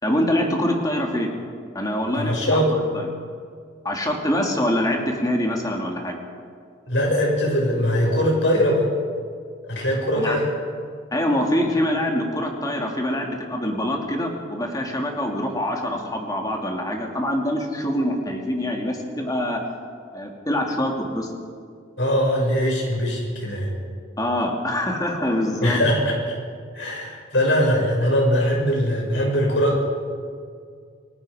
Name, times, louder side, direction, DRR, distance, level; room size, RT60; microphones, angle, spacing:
voice 1, 0.0-1.3 1.7-3.1 3.8-6.2 10.1-10.4 11.1-19.6 20.1-21.3 24.2-25.8, left 1 dB, 20° left, 1 dB, 2.8 m, -24 dB
voice 2, 2.1-2.7 6.9-8.9 9.7-10.5 22.0-23.7 25.6-26.3 26.7-29.8, equal, 70° left, -1 dB, 6.4 m, -21 dB
29.0 x 18.5 x 5.1 m, 2.1 s
head